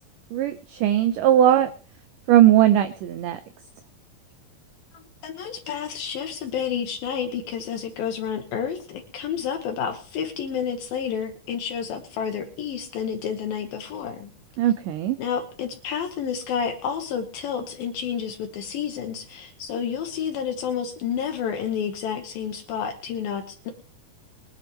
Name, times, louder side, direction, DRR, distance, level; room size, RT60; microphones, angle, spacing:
voice 1, 0.3-1.7 2.3-3.4 14.6-15.2, right 11 dB, 80° right, 11 dB, 1.9 m, -19 dB
voice 2, 5.2-14.3 15.2-23.7, left 7 dB, 70° left, 4 dB, 2.9 m, -30 dB
23.0 x 9.3 x 3.1 m, 0.41 s
omnidirectional pair, 4.5 m